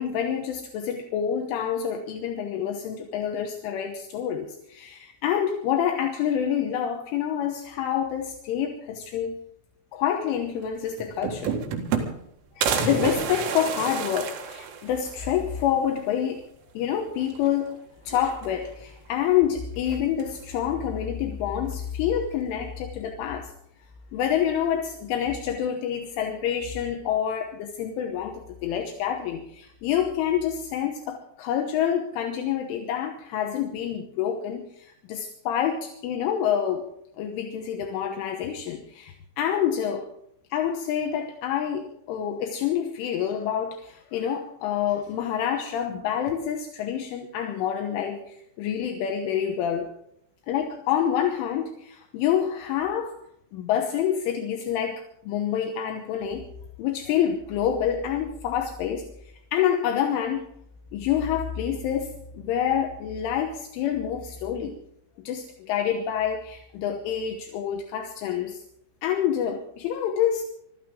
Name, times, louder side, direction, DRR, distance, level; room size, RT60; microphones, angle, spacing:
voice 1, 0.0-9.4 9.9-11.5 12.6-16.4 16.7-23.5 24.1-36.9 37.2-40.1 40.5-49.9 50.5-53.2 53.5-56.5 56.8-60.5 60.9-64.8 65.2-68.6 69.0-70.4, left 9 dB, 80° left, 3 dB, 3.5 m, -27 dB
sound 1, 10.6-10.7 11.0-12.3 12.6-15.2 15.6-15.7 16.0-16.1 17.2-17.7 18.1-18.8 19.9-20.4, right 6 dB, 80° right, 4.3 m, -29 dB
25.0 x 13.5 x 3.7 m, 0.75 s
omnidirectional pair, 5.7 m